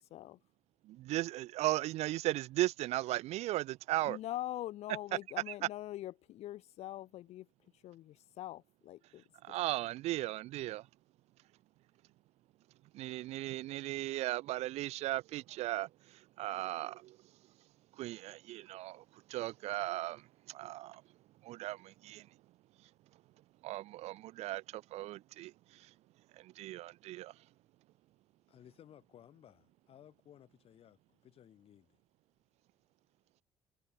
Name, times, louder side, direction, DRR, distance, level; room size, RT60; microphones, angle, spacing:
voice 1, 0.8-4.2 5.5-5.6 9.4-10.9 12.9-17.2 17.9-21.0 21.4-22.3 23.6-25.9 26.3-27.3, right 16 dB, 85° right, 0.4 m, -37 dB
voice 2, 4.0-7.5 7.8-9.6, left 14 dB, 80° left, 0.8 m, -43 dB
voice 3, 28.5-32.0, left 10 dB, 60° left, 3.8 m, -59 dB
cardioid pair, 125°, 11 cm